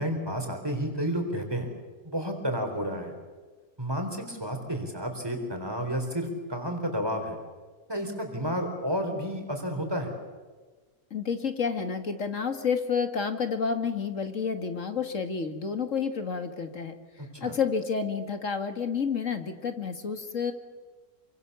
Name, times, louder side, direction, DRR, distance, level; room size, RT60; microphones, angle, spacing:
voice 1, 0.0-1.7 2.1-3.1 3.8-7.4 7.9-10.1 17.2-17.6, equal, 15° right, 4 dB, 4.2 m, -31 dB
voice 2, 11.1-16.9 17.4-20.5, left 5 dB, 55° left, 7 dB, 2.1 m, -30 dB
27.5 x 24.5 x 7.0 m, 1.4 s
omnidirectional pair, 1.6 m